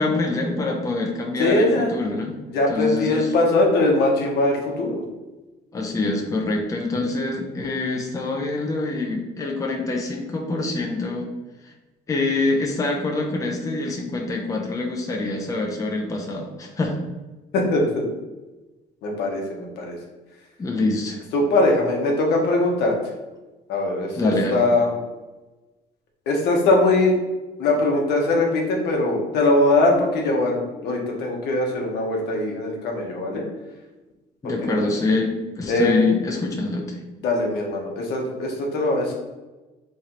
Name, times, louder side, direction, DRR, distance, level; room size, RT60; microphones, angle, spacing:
voice 1, 0.0-2.3 2.7-3.3 5.7-11.3 11.6-11.7 12.1-17.0 20.6-21.2 24.2-24.6 34.4-37.0, left 3 dB, 20° left, 0 dB, 0.6 m, -25 dB
voice 2, 1.4-1.9 2.5-5.1 17.5-18.1 19.0-20.0 21.3-22.9 23.7-25.0 26.3-27.1 27.6-33.5 34.4-34.9 35.7-36.0 37.2-39.1, left 2 dB, 75° left, 0 dB, 0.9 m, -21 dB
3.6 x 3.2 x 2.9 m, 1.1 s
cardioid pair, 110°, 17 cm